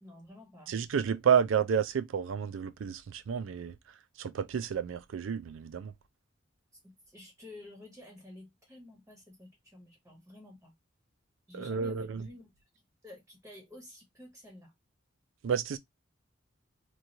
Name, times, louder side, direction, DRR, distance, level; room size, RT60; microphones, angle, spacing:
voice 1, 0.0-0.7 6.8-10.8 11.5-12.5 13.0-14.7, left 1 dB, 10° right, 0.8 m, -51 dB
voice 2, 0.7-5.9 11.5-12.3 15.4-15.8, right 7 dB, 90° right, 0.4 m, -30 dB
3.0 x 2.4 x 2.6 m
head